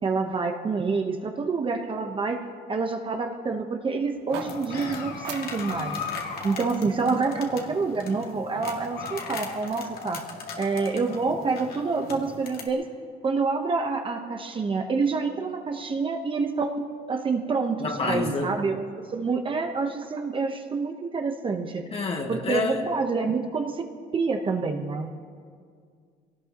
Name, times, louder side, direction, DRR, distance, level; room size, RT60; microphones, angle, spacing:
voice 1, 0.0-2.4 2.7-6.0 6.4-10.2 10.6-12.9 13.2-18.8 19.1-21.8 22.3-23.9 24.1-25.1, right 4 dB, 30° right, 4 dB, 1.0 m, -27 dB
sound 1, 4.1-8.3, right 7 dB, 90° right, 1.2 m, -44 dB
sound 2, 4.3-12.7, left 4 dB, 65° left, 2.3 m, -37 dB
voice 2, 17.8-18.5 21.9-22.9, left 3 dB, 35° left, 2 dB, 1.9 m, -28 dB
22.5 x 18.0 x 3.0 m, 2.1 s
cardioid pair, 110°, 17 cm